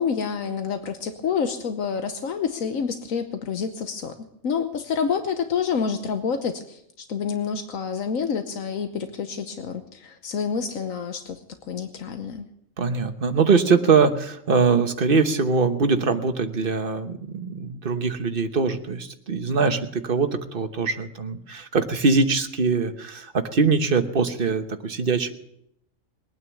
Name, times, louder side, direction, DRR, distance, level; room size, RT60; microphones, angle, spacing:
voice 1, 0.0-4.1 4.4-11.4 11.7-12.5, left 6 dB, 85° left, 8 dB, 1.4 m, -28 dB
voice 2, 12.8-25.3, right 4 dB, 45° right, 7 dB, 1.2 m, -22 dB
21.0 x 9.5 x 7.1 m, 0.76 s
omnidirectional pair, 1.4 m